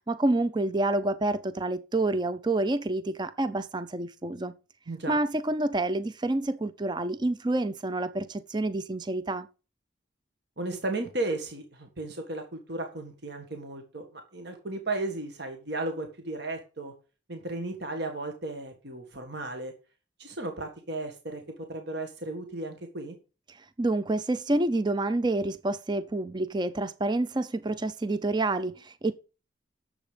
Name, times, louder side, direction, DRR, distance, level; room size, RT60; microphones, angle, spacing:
voice 1, 0.1-4.5 5.1-9.5 23.8-29.1, right 2 dB, 20° right, 0.5 m, -28 dB
voice 2, 4.9-5.2 10.6-16.9 17.3-19.7 20.2-23.1, right 2 dB, 55° right, 1.7 m, -35 dB
10.5 x 7.4 x 5.1 m
head